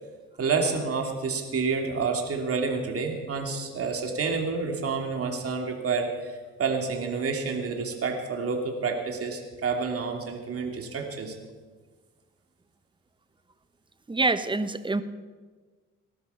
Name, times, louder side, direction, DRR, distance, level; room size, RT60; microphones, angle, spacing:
voice 1, 0.4-11.3, right 4 dB, 50° right, 2 dB, 2.9 m, -29 dB
voice 2, 14.1-15.0, right 3 dB, 15° right, 12 dB, 0.9 m, -25 dB
18.5 x 12.5 x 5.7 m, 1.4 s
cardioid pair, 90°, 30 cm